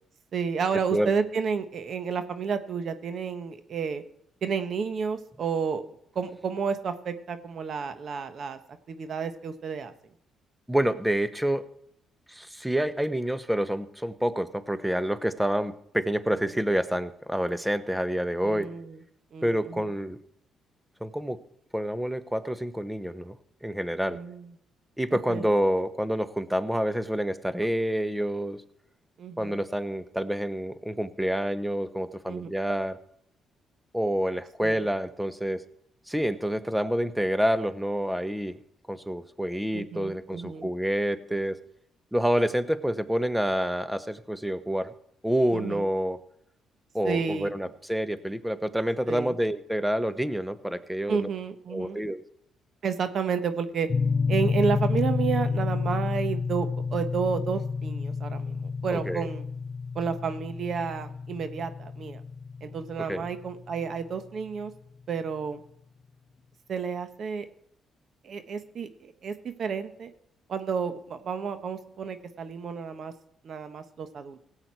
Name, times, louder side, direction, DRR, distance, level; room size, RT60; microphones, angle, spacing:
voice 1, 0.3-4.0 4.4-5.8 6.1-8.6 8.9-9.9 18.4-19.0 19.3-19.9 24.1-24.5 25.1-25.5 29.2-29.6 32.3-32.5 34.6-34.8 39.7-40.7 45.5-45.8 47.0-47.5 49.1-49.3 51.1-52.0 52.8-53.9 54.3-59.5 59.9-62.2 62.6-64.7 65.1-65.6 66.7-67.5 68.2-70.1 70.5-73.1 73.4-74.4, right 6 dB, 55° right, 10 dB, 1.1 m, -31 dB
voice 2, 10.7-11.6 12.3-18.7 19.4-20.2 21.0-21.4 21.7-23.4 23.6-24.2 25.0-28.6 29.4-33.0 33.9-35.6 36.1-38.6 38.9-41.6 42.1-44.9 45.2-46.2 46.9-51.3 51.7-52.2 58.9-59.3 63.1-63.2, equal, 5° right, 13 dB, 0.8 m, -28 dB
sound 1, 53.9-64.0, left 5 dB, 35° left, 0.5 m, -30 dB
17.5 x 8.1 x 4.6 m, 0.71 s
cardioid pair, 90°, 0 cm